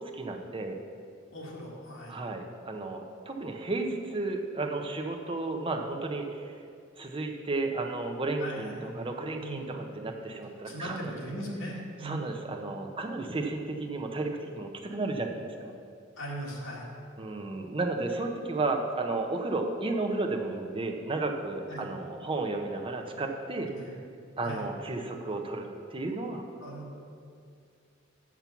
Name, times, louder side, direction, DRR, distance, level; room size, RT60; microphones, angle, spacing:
voice 1, 0.1-0.8 2.1-6.6 7.0-11.2 12.0-15.7 17.2-23.7 24.4-26.4, right 2 dB, 25° right, 2 dB, 0.8 m, -33 dB
voice 2, 1.3-2.2 8.4-9.0 9.4-9.8 10.6-12.3 16.2-16.9 21.7-21.9 23.8-23.9 24.4-24.6 26.6-26.9, equal, 75° left, -3 dB, 2.0 m, -39 dB
7.4 x 6.0 x 7.0 m, 2.3 s
head